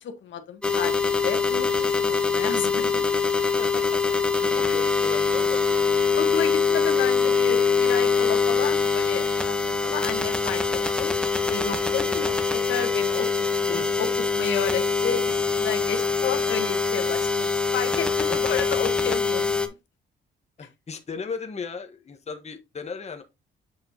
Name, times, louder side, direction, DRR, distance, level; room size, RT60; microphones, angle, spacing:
voice 1, 0.0-3.0 6.2-9.5 9.8-11.2 11.4-13.3 13.7-14.1 14.3-19.6 20.6-20.7, left 7 dB, 70° left, 1.4 m, -32 dB
sound 1, 0.6-19.7, left 5 dB, 5° left, 1.2 m, -23 dB
voice 2, 3.6-4.0 4.3-6.1 13.7-13.9 18.3-18.5 20.6-23.2, left 5 dB, 35° left, 1.3 m, -37 dB
7.7 x 5.3 x 2.9 m
cardioid pair, 90°, 20 cm